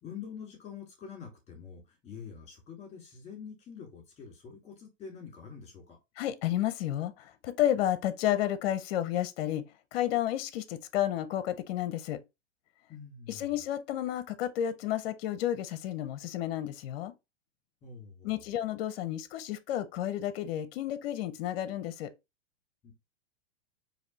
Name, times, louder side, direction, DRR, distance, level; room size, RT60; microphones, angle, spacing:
voice 1, 0.0-6.0 12.9-13.6 17.8-18.4 22.8-22.9, left 6 dB, 20° left, 2.3 m, -46 dB
voice 2, 6.2-9.6 9.9-12.2 13.3-17.1 18.2-22.1, left 12 dB, 50° left, 0.6 m, -31 dB
4.2 x 2.7 x 3.0 m
hypercardioid pair, 120°, 37 cm